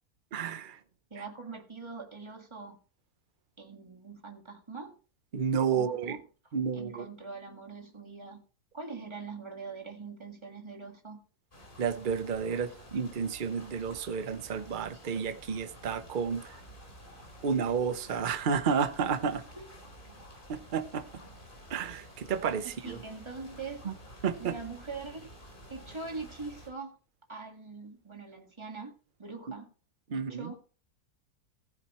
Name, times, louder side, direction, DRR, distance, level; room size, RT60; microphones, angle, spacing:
voice 1, 0.3-0.8 5.3-6.2 6.5-7.1 11.8-16.6 17.4-19.4 20.5-21.0 21.7-23.0 23.8-23.9 24.2-24.6 29.5-29.6 30.1-30.5, right 6 dB, 40° right, 0.8 m, -31 dB
voice 2, 1.1-2.8 3.6-4.9 5.7-6.2 6.7-8.4 8.7-11.2 19.6-19.7 22.8-23.9 24.4-25.3 25.7-27.0 27.3-28.9 29.2-29.7 30.1-30.6, right 4 dB, 20° right, 1.8 m, -42 dB
sound 1, 11.5-26.7, equal, 30° left, 3.7 m, -51 dB
15.0 x 9.1 x 3.1 m
omnidirectional pair, 1.7 m